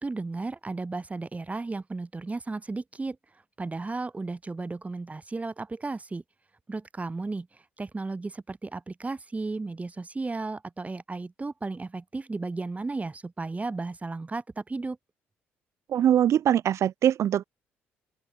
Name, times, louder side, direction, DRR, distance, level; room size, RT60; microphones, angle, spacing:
voice 1, 0.0-3.2 3.6-6.2 6.7-7.5 7.8-15.0, right 3 dB, 20° right, 7.0 m, -34 dB
voice 2, 15.9-17.4, right 10 dB, 50° right, 1.3 m, -22 dB
open air
figure-of-eight pair, 50°, 6 cm